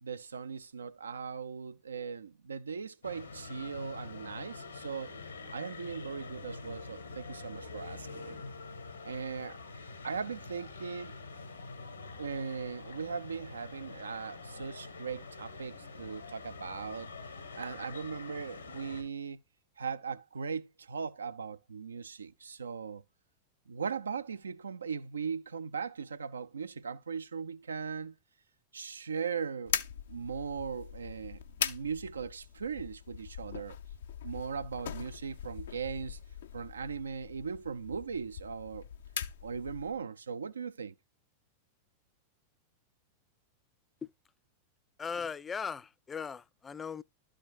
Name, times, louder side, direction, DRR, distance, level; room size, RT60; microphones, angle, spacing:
voice 1, 0.0-5.1 5.5-8.4 9.0-9.6 10.0-11.1 12.2-17.1 17.6-19.4 19.8-23.0 23.7-28.2 28.7-29.8 30.1-33.8 34.2-36.2 36.5-38.9 39.4-40.9, right 6 dB, 75° right, 0.5 m, -39 dB
sound 1, 3.0-19.0, left 3 dB, 80° left, 1.6 m, -46 dB
sound 2, 29.7-40.0, left 8 dB, 65° left, 0.6 m, -41 dB
voice 2, 45.0-47.0, left 6 dB, 20° left, 0.3 m, -38 dB
12.5 x 5.0 x 2.4 m
figure-of-eight pair, 90°, 0 cm